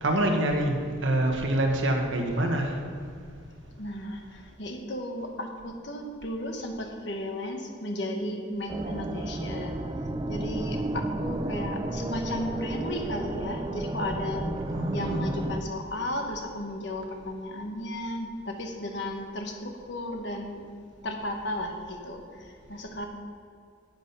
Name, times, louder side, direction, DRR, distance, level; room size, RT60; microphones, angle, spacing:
voice 1, 0.0-2.8 14.7-15.3, right 1 dB, 70° right, 2 dB, 1.5 m, -26 dB
voice 2, 3.8-9.8 10.3-14.5 14.9-20.6 21.0-23.1, left 1 dB, 60° left, 3 dB, 1.4 m, -34 dB
Eerie drone, 8.7-15.6, right 1 dB, 20° right, 0.4 m, -32 dB
10.0 x 8.3 x 5.7 m, 2.3 s
head